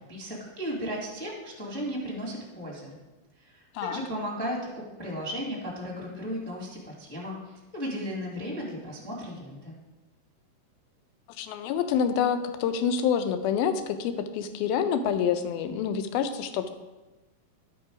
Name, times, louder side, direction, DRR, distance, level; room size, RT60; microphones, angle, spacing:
voice 1, 0.1-3.0 3.4-9.7, equal, 5° left, -3 dB, 1.0 m, -35 dB
voice 2, 11.4-16.7, left 7 dB, 90° left, 9 dB, 2.5 m, -27 dB
11.5 x 5.4 x 4.9 m, 1.1 s
omnidirectional pair, 4.2 m